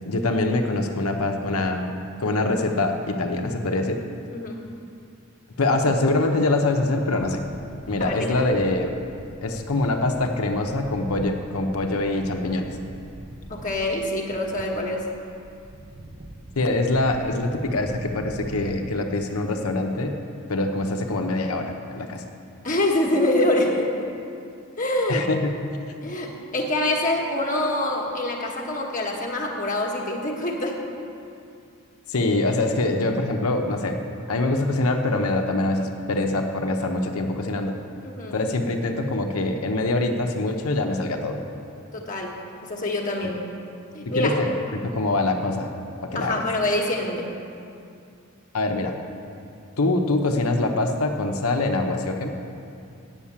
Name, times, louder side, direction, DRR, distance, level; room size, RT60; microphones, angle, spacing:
voice 1, 0.1-1.9 2.2-4.0 5.6-7.4 7.9-9.0 9.4-12.8 16.6-20.2 20.5-22.2 25.1-25.5 32.1-34.0 34.3-37.8 38.3-41.4 44.1-45.7 46.0-46.4 48.5-48.9 49.8-52.3, left 2 dB, 90° left, 4 dB, 0.8 m, -24 dB
sound 1, 7.1-19.0, right 1 dB, 25° right, 0.5 m, -42 dB
voice 2, 8.0-8.5 13.5-15.1 22.6-24.1 24.8-25.2 26.0-30.8 38.0-38.4 41.9-43.4 43.9-44.4 46.1-47.3, left 1 dB, 40° left, -1 dB, 1.2 m, -25 dB
9.0 x 7.3 x 8.4 m, 2.5 s
head